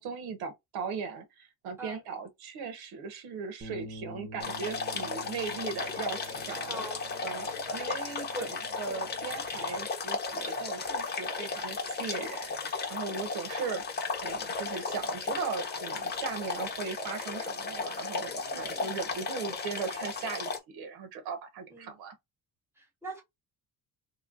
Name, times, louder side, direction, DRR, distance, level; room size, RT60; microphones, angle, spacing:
voice 1, 0.0-6.8 7.2-13.8 14.2-22.1, right 5 dB, 80° right, 1.3 m, -38 dB
sound 1, 3.6-9.9, equal, 25° right, 0.9 m, -49 dB
sound 2, 4.4-20.6, left 4 dB, 25° left, 0.8 m, -35 dB
voice 2, 6.6-7.1 7.4-7.9 8.3-8.6 8.9-9.1 18.5-19.0 21.7-22.0 22.8-23.2, right 1 dB, 5° right, 1.1 m, -42 dB
3.4 x 3.1 x 2.5 m
cardioid pair, 150°, 38 cm